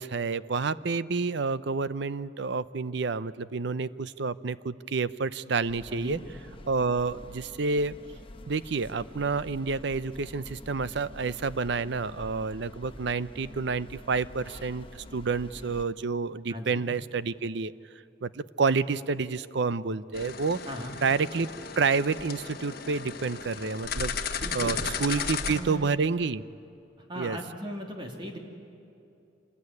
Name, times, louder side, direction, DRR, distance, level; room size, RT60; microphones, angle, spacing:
voice 1, 0.0-6.2 6.7-7.9 8.5-17.7 18.2-20.6 21.0-21.5 21.8-26.4 27.2-27.4, right 4 dB, 60° right, 16 dB, 0.6 m, -29 dB
sound 1, 5.7-15.8, left 1 dB, 30° left, 1.1 m, -47 dB
voice 2, 5.9-6.2 16.5-16.8 20.6-21.0 24.4-24.8 25.2-25.3 25.5-25.9 27.1-28.4, equal, 25° right, 2 dB, 2.4 m, -38 dB
sound 2, 20.1-25.6, left 6 dB, 50° left, 1.5 m, -35 dB
26.0 x 19.5 x 9.7 m, 2.7 s
head